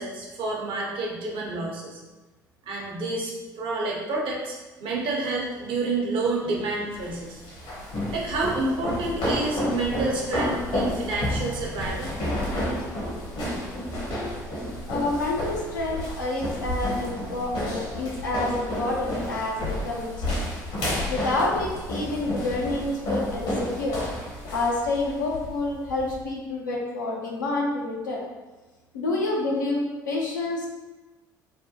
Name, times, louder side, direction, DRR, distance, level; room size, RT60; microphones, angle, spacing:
voice 1, 0.0-2.0 2.7-7.4 8.1-12.1, right 2 dB, 55° right, -2 dB, 0.8 m, -29 dB
sound 1, 7.0-26.2, left 1 dB, 60° left, 1.0 m, -31 dB
voice 2, 14.9-20.4 21.1-24.0 24.5-28.2 28.9-30.7, left 2 dB, 85° left, -2 dB, 0.6 m, -28 dB
3.3 x 2.1 x 2.8 m, 1.2 s
figure-of-eight pair, 60°, 10 cm